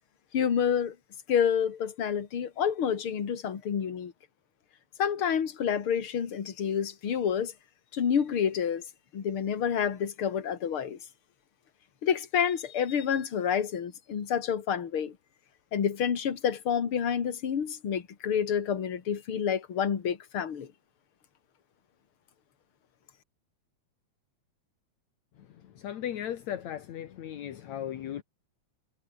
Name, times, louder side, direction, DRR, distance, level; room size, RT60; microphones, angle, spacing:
voice 1, 0.3-1.0 1.3-4.1 5.0-7.5 7.9-8.8 9.1-11.0 12.0-15.2 15.7-20.7, left 8 dB, 45° left, 3.0 m, -28 dB
voice 2, 25.8-28.2, left 10 dB, 70° left, 2.7 m, -36 dB
omnidirectional pair, 3.4 m